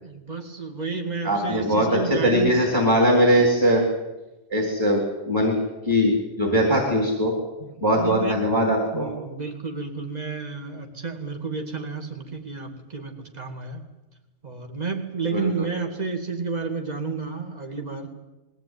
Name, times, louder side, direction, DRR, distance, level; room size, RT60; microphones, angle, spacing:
voice 1, 0.0-2.6 7.6-8.4 8.9-13.8 14.4-18.1, right 4 dB, 35° right, 4 dB, 2.5 m, -31 dB
voice 2, 1.2-3.8 4.5-5.6 5.8-7.3 7.8-9.1 15.2-15.7, equal, 15° right, 0 dB, 4.1 m, -21 dB
21.5 x 16.5 x 9.6 m, 1.1 s
omnidirectional pair, 1.3 m